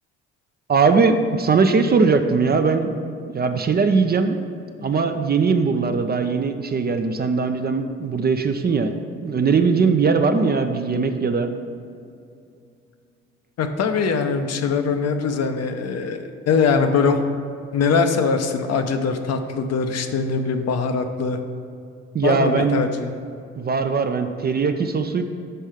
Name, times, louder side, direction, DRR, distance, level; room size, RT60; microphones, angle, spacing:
voice 1, 0.7-2.9 3.3-4.4 4.8-8.9 9.2-11.5 22.1-22.8 23.6-25.2, right 4 dB, 30° right, 7 dB, 0.5 m, -20 dB
voice 2, 13.6-17.2 17.7-21.4 22.2-23.1, left 5 dB, 45° left, 6 dB, 0.7 m, -22 dB
6.7 x 5.3 x 4.9 m, 2.5 s
hypercardioid pair, 50°, 35 cm